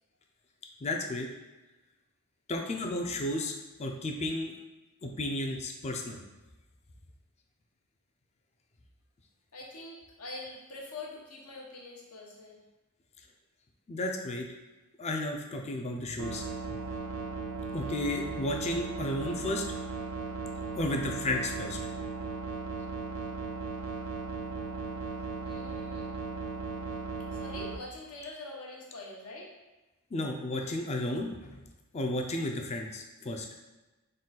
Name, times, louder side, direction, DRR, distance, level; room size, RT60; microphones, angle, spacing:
voice 1, 0.8-1.3 2.5-4.5 5.0-6.2 13.9-14.5 15.0-16.5 17.7-19.6 20.7-21.8 30.1-31.6 31.9-33.5, left 1 dB, 30° left, 2 dB, 0.4 m, -33 dB
voice 2, 9.5-12.6 25.4-26.0 27.3-29.5, left 2 dB, 80° left, -2 dB, 0.9 m, -44 dB
sound 1, 16.2-27.8, right 4 dB, 85° right, 0.5 m, -37 dB
3.8 x 2.3 x 4.0 m, 1.1 s
head